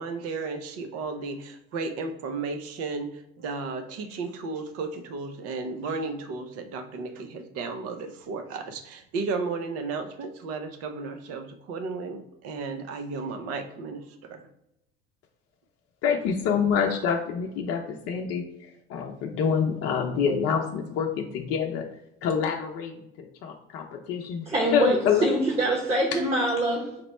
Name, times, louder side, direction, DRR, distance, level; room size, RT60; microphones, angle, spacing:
voice 1, 0.0-14.5, right 4 dB, 55° right, 7 dB, 0.7 m, -34 dB
voice 2, 16.0-21.9 22.2-25.3, left 6 dB, 55° left, 1 dB, 0.6 m, -27 dB
voice 3, 24.5-27.0, right 1 dB, 20° right, -1 dB, 1.0 m, -25 dB
4.3 x 2.1 x 4.2 m, 0.85 s
hypercardioid pair, 70°, 29 cm